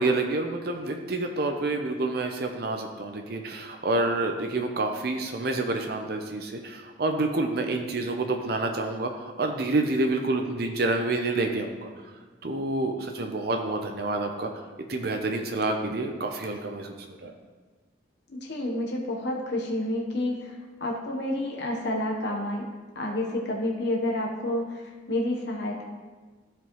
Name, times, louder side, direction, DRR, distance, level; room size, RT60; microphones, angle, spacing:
voice 1, 0.0-12.1 12.4-14.5 14.9-17.3, right 2 dB, 55° right, 4 dB, 0.6 m, -28 dB
voice 2, 18.3-20.5 20.8-22.7 22.9-25.8, left 1 dB, 65° left, -1 dB, 0.9 m, -29 dB
14.0 x 5.1 x 3.0 m, 1.4 s
head